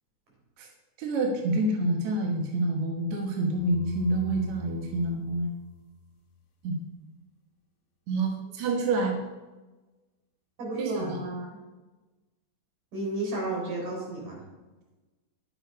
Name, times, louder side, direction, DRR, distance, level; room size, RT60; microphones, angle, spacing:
voice 1, 1.0-5.5 6.6-6.8 8.1-9.2 10.8-11.2, right 2 dB, 65° right, 1 dB, 2.4 m, -27 dB
sound 1, 3.6-6.5, left 7 dB, 65° left, 2.2 m, -42 dB
voice 2, 10.6-11.5 12.9-14.4, right 2 dB, 80° right, -3 dB, 5.4 m, -32 dB
11.0 x 8.8 x 5.1 m, 1.2 s
omnidirectional pair, 3.7 m